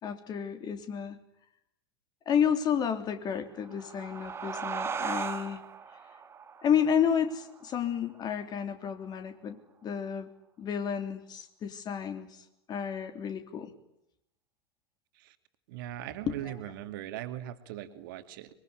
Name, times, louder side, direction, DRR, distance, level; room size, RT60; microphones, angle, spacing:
voice 1, 0.0-1.2 2.3-5.6 6.6-10.3 10.6-12.3 12.7-13.7 16.3-16.6, left 8 dB, 30° left, 8 dB, 3.4 m, -31 dB
sound 1, 3.5-8.6, right 6 dB, 20° right, 1.5 m, -38 dB
voice 2, 15.7-18.5, right 12 dB, 55° right, 10 dB, 2.5 m, -39 dB
24.5 x 23.5 x 9.8 m, 0.78 s
figure-of-eight pair, 85°, 14 cm